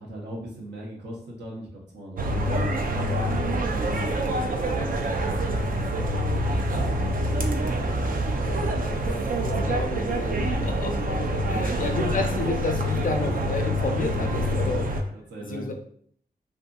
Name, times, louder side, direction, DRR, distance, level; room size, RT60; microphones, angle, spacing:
voice 1, 0.0-3.3 3.6-5.0 5.9-8.7 10.3-10.9 11.5-11.7 14.9-15.7, right 1 dB, 85° right, -3 dB, 0.8 m, -40 dB
sound 1, 2.2-15.0, right 1 dB, 55° right, 0.4 m, -26 dB
voice 2, 6.7-7.1 8.5-8.6 9.0-10.9 11.5-14.9 15.5-15.7, left 2 dB, 50° left, 4 dB, 0.5 m, -31 dB
2.6 x 2.6 x 2.3 m, 0.62 s
cardioid pair, 45°, 17 cm